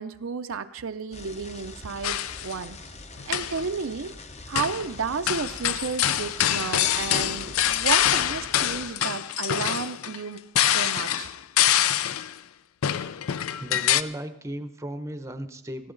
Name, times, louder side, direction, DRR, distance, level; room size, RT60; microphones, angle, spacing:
voice 1, 0.0-2.8 3.3-4.1 4.5-11.3, right 5 dB, 60° right, 9 dB, 0.5 m, -32 dB
sound 1, 1.1-8.9, left 3 dB, 30° left, 0.8 m, -43 dB
sound 2, 2.0-2.5 3.2-3.7 4.6-4.9 5.3-12.3 12.8-14.0, left 11 dB, 65° left, 0.4 m, -25 dB
voice 2, 13.6-15.9, right 1 dB, 15° right, 9 dB, 0.7 m, -35 dB
19.5 x 14.5 x 3.9 m, 0.80 s
head